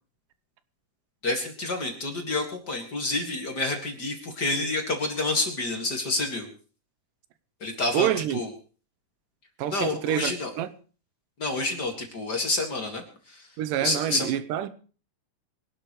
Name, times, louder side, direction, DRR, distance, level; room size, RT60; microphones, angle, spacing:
voice 1, 1.2-6.5 7.6-8.5 9.7-10.5 11.4-13.5 13.8-14.3, left 2 dB, 35° left, 2.4 m, -28 dB
voice 2, 7.9-8.4 9.6-10.7 13.6-14.7, right 11 dB, 90° right, 2.5 m, -27 dB
24.5 x 11.5 x 3.2 m
omnidirectional pair, 3.7 m